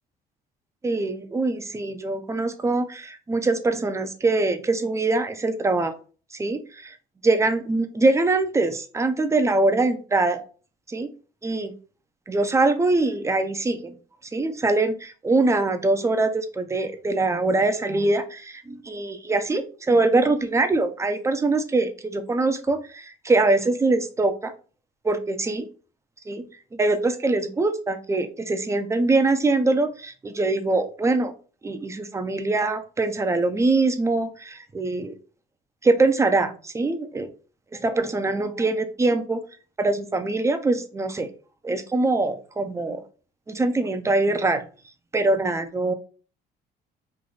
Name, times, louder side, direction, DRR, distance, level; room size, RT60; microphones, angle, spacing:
voice 1, 0.8-5.9 6.4-7.0 7.2-10.4 10.9-11.1 11.4-11.7 12.3-14.0 14.3-24.5 25.0-25.7 26.3-26.4 26.7-31.3 31.6-35.1 35.8-37.3 37.7-39.4 39.8-41.3 41.6-43.0 43.5-44.7 45.1-45.9, right 2 dB, 15° right, 8 dB, 0.6 m, -23 dB
3.3 x 2.5 x 3.9 m, 0.38 s
cardioid pair, 110°, 17 cm